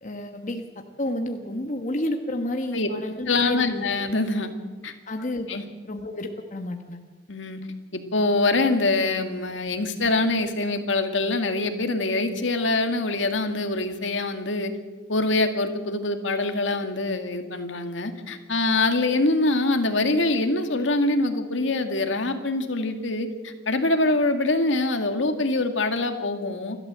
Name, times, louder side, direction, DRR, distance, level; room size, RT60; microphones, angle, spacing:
voice 1, 0.0-4.1 5.1-5.5 5.8-7.0, left 1 dB, 40° left, 4 dB, 1.4 m, -30 dB
voice 2, 3.3-4.5 4.8-4.9 5.5-5.6 7.3-7.6 7.9-14.7 15.1-26.8, left 2 dB, 75° left, 6 dB, 2.1 m, -24 dB
28.5 x 12.5 x 7.7 m, 1.3 s
head